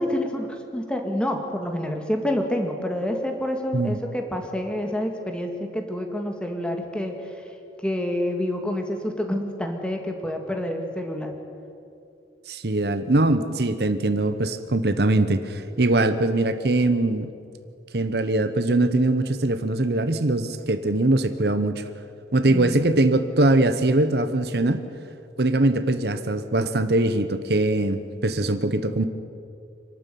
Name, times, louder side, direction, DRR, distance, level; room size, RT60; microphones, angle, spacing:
voice 1, 0.0-7.1 7.8-11.3 22.5-22.9, left 1 dB, 5° left, 3 dB, 2.1 m, -28 dB
voice 2, 12.5-17.3 17.9-21.8 22.3-24.8 25.4-29.0, right 2 dB, 65° right, 11 dB, 1.0 m, -22 dB
26.5 x 12.5 x 9.3 m, 2.6 s
head